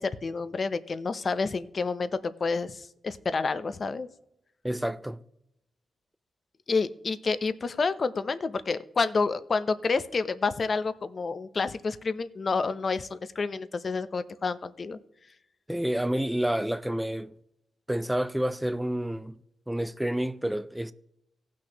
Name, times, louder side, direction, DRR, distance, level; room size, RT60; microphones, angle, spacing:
voice 1, 0.0-4.1 6.7-15.0, left 4 dB, 40° left, 0.6 m, -29 dB
voice 2, 4.6-5.2 15.7-17.3 17.9-19.4 19.7-20.9, right 1 dB, 5° right, 0.4 m, -29 dB
18.0 x 6.3 x 2.9 m
wide cardioid pair, 115°, 0 cm